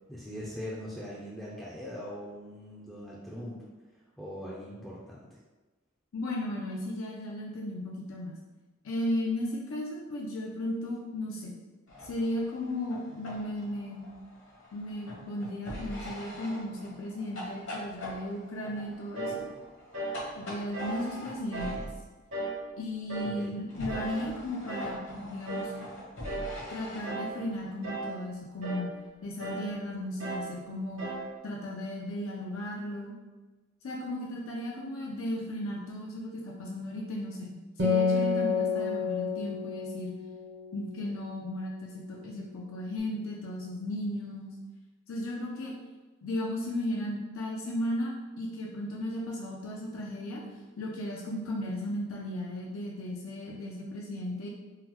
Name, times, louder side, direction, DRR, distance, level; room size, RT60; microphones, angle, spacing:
voice 1, 0.1-3.6 4.2-5.3 23.2-23.6, equal, ahead, -7 dB, 0.3 m, -41 dB
voice 2, 6.1-8.4 8.8-11.5 12.0-14.1 14.7-19.5 20.4-21.9 22.8-25.7 26.7-28.9 29.2-31.0 31.4-33.1 33.8-40.2 40.7-44.5 45.1-45.7 46.2-50.4 50.8-54.5, left 1 dB, 85° left, -3 dB, 0.5 m, -35 dB
sound 1, 11.9-22.2 23.7-27.7, left 1 dB, 65° left, 1.0 m, -43 dB
sound 2, 19.2-19.4 19.9-20.2 20.7-21.0 21.5-21.8 22.3-22.6 23.1-23.4 23.9-24.2 24.7-25.0 25.5-25.8 26.2-26.5 27.0-27.4 27.8-28.2 28.6-28.9 29.4-29.7 30.2-30.5 31.0-31.3, right 3 dB, 85° right, 1.1 m, -36 dB
Acoustic guitar, 37.8-41.5, left 5 dB, 60° right, 0.7 m, -29 dB
3.7 x 2.1 x 2.9 m, 1.2 s
head